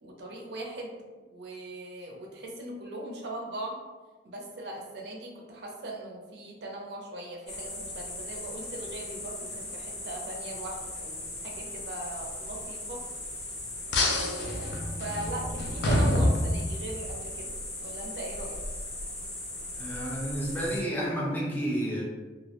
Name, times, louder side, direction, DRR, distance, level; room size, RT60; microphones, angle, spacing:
voice 1, 0.0-0.9 1.3-3.8 4.2-13.0 13.9-17.5 17.8-18.6, right 1 dB, 70° right, -1 dB, 0.5 m, -39 dB
sound 1, 7.5-20.8, left 2 dB, 60° left, 0.7 m, -38 dB
sound 2, 13.9-17.1, left 1 dB, 75° left, 0.4 m, -27 dB
voice 2, 19.7-22.0, equal, 10° left, -5 dB, 0.5 m, -31 dB
2.3 x 2.0 x 2.8 m, 1.3 s
head